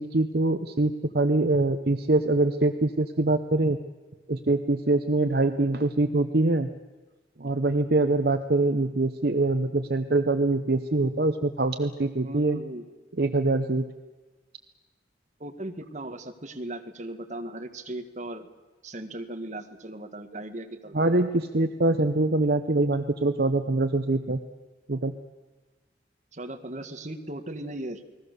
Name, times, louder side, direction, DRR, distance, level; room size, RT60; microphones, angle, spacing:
voice 1, 0.0-3.8 4.3-6.7 7.4-12.6 13.2-13.9 20.9-24.4 24.9-25.1, right 2 dB, 55° right, 8 dB, 0.9 m, -24 dB
voice 2, 12.2-12.8 15.4-18.5 18.8-21.3 26.3-28.0, right 1 dB, 40° right, 5 dB, 1.8 m, -37 dB
29.5 x 20.5 x 6.8 m, 1.3 s
head